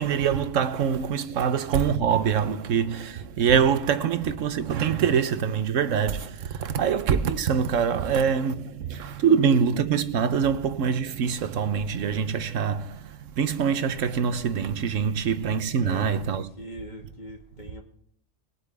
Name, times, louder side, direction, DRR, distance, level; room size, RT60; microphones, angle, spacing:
voice 1, 0.0-16.5, right 7 dB, 80° right, 1.2 m, -24 dB
voice 2, 15.8-17.8, equal, 35° left, 2.2 m, -41 dB
21.0 x 8.3 x 3.4 m
omnidirectional pair, 1.3 m